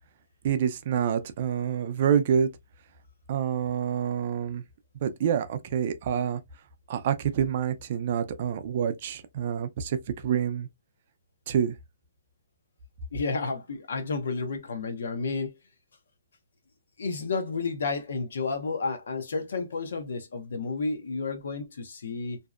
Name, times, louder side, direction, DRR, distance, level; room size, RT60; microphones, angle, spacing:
voice 1, 0.4-2.5 3.3-4.6 5.0-6.4 6.9-10.7 11.5-11.7, right 8 dB, 40° right, 0.4 m, -27 dB
voice 2, 13.1-15.6 17.0-22.4, left 4 dB, 70° left, 0.6 m, -31 dB
2.6 x 2.1 x 2.3 m
hypercardioid pair, 165°, 0 cm